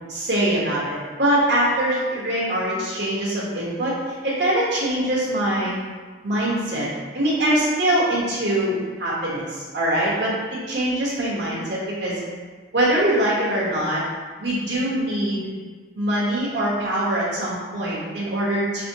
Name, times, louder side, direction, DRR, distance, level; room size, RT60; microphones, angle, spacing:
voice 1, 0.0-3.9 4.2-5.7 6.2-6.9 7.1-12.2 12.7-14.0 14.4-15.5 15.9-18.9, right 1 dB, 75° right, -6 dB, 1.4 m, -23 dB
4.1 x 3.8 x 3.0 m, 1.4 s
head